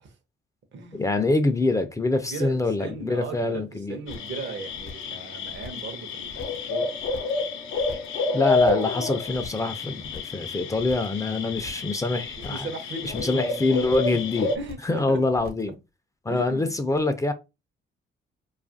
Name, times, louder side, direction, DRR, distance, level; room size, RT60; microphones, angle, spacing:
voice 1, 0.9-4.0 8.3-12.7 13.1-14.5 14.8-15.7 16.3-17.3, left 2 dB, 15° left, 0.4 m, -25 dB
voice 2, 2.3-6.9 12.4-13.6 14.1-14.2 14.5-15.2 16.3-16.8, right 4 dB, 65° right, 0.8 m, -37 dB
sound 1, 4.1-14.6, left 3 dB, 90° left, 0.6 m, -29 dB
sound 2, 4.1-4.4 4.7-5.2 5.5-5.9 6.2-6.7 7.0-7.4 7.7-8.2 8.5-9.0 9.2-9.7 10.0-10.4 10.7-11.2 11.5-11.9 12.2-12.7 13.0-13.5 13.8-14.2 14.5-15.0 15.3-15.7, left 5 dB, 50° left, 0.7 m, -43 dB
2.7 x 2.4 x 2.5 m
cardioid pair, 90°, 20 cm